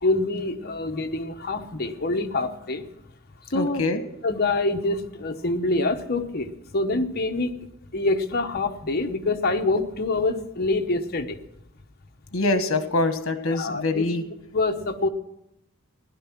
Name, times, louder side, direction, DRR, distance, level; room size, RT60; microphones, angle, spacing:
voice 1, 0.0-2.8 3.5-3.8 4.2-7.5 7.9-11.4 13.5-14.0 14.5-15.1, left 2 dB, 45° left, 5 dB, 1.1 m, -25 dB
voice 2, 3.5-4.0 12.3-14.2, left 2 dB, 65° left, 8 dB, 1.5 m, -24 dB
15.5 x 11.5 x 6.0 m, 0.82 s
head